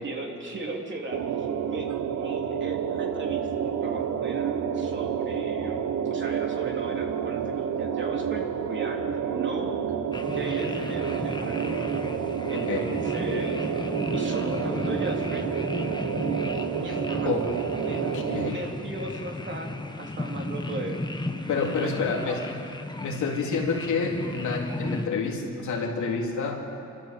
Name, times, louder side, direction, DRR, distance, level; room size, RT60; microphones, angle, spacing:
voice 1, 0.0-5.8 6.1-9.8 10.3-11.8 12.5-13.7 14.1-15.5 16.8-17.3 17.7-21.0 21.5-22.4, right 2 dB, 40° right, 1 dB, 3.4 m, -37 dB
sound 1, 1.1-18.5, right 8 dB, 70° right, 1.4 m, -29 dB
sound 2, 10.1-25.1, left 2 dB, 15° left, 1.3 m, -34 dB
voice 2, 12.5-12.9 17.3-17.5 18.1-18.6 21.5-22.4 23.0-26.6, left 4 dB, 75° left, -1 dB, 3.6 m, -28 dB
27.0 x 14.0 x 7.7 m, 2.7 s
cardioid pair, 90°, 30 cm